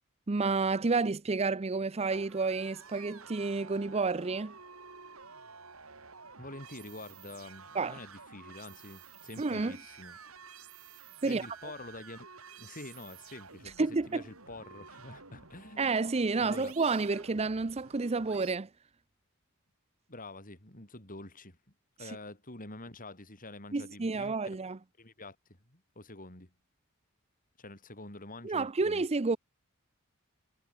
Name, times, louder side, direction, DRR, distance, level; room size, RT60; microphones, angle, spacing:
voice 1, 0.3-4.5 7.7-8.0 9.4-9.8 11.2-11.5 13.8-14.2 15.8-18.7 23.7-24.8 28.4-29.4, right 3 dB, 30° right, 0.6 m, -30 dB
sound 1, 2.1-18.6, right 5 dB, 80° right, 5.7 m, -52 dB
voice 2, 6.4-10.2 11.2-12.3 12.6-15.9 16.4-16.7 20.1-21.6 22.0-24.6 25.0-25.4 25.7-26.5 27.6-29.0, left 2 dB, 40° left, 7.4 m, -47 dB
head